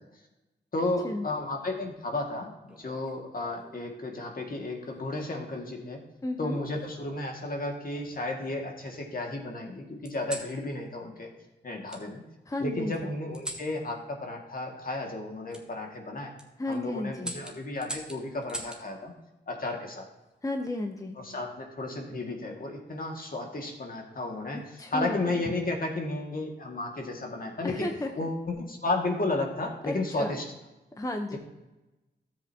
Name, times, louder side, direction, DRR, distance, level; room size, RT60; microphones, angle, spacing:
voice 1, 0.7-6.0 6.4-11.3 11.6-12.2 12.6-16.3 16.7-19.1 19.5-20.1 21.2-24.6 24.9-27.9 28.2-30.4, left 2 dB, 50° left, 1 dB, 2.0 m, -33 dB
sound 1, 2.7-3.8 4.8-5.2 6.5-7.3 7.9-8.8 10.0-10.5 11.9-12.0 13.3-13.7 15.5-15.6 16.2-16.5 17.2-18.8 20.3-20.7, right 1 dB, 5° right, 1.7 m, -42 dB
voice 2, 6.2-6.6 12.5-13.1 16.6-17.3 20.4-21.2 24.8-25.3 27.6-28.1 29.8-30.4 30.9-31.4, left 2 dB, 20° left, 5 dB, 0.8 m, -33 dB
13.0 x 7.8 x 2.8 m, 1.0 s
cardioid pair, 60°, 18 cm